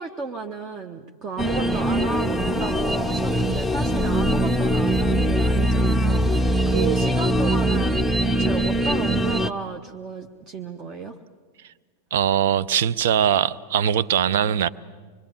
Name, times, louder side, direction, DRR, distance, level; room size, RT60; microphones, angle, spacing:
voice 1, 0.0-11.2, right 4 dB, 30° right, 1.0 m, -33 dB
sound 1, 1.4-9.5, right 1 dB, 5° left, 0.7 m, -22 dB
voice 2, 12.1-14.7, right 9 dB, 55° right, 0.6 m, -21 dB
25.0 x 22.5 x 7.2 m
figure-of-eight pair, 90°, 0 cm